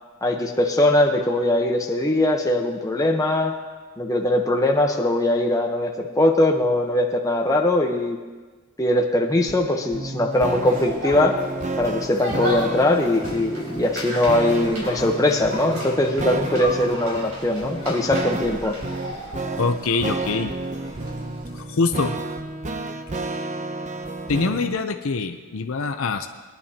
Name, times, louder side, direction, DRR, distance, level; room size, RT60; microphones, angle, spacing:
voice 1, 0.2-3.6 4.0-8.2 8.8-11.4 11.8-18.7, left 1 dB, 15° left, 1 dB, 1.0 m, -21 dB
sound 1, 9.5-24.8, right 2 dB, 35° right, 0.7 m, -31 dB
sound 2, 10.3-21.6, equal, 65° right, 3.7 m, -35 dB
voice 2, 19.6-20.5 21.5-22.2 24.3-26.3, left 4 dB, 70° left, 7 dB, 0.7 m, -24 dB
21.0 x 10.5 x 2.9 m, 1.4 s
head